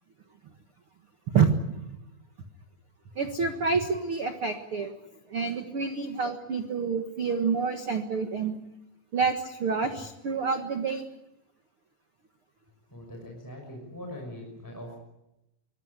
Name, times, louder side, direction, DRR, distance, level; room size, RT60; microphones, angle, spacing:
voice 1, 1.3-1.9 3.1-4.9 5.3-8.6 9.1-11.0, right 5 dB, 90° right, 6 dB, 1.2 m, -28 dB
voice 2, 12.9-15.0, left 1 dB, 5° left, 0 dB, 5.6 m, -41 dB
24.5 x 19.5 x 9.8 m, 0.89 s
omnidirectional pair, 5.3 m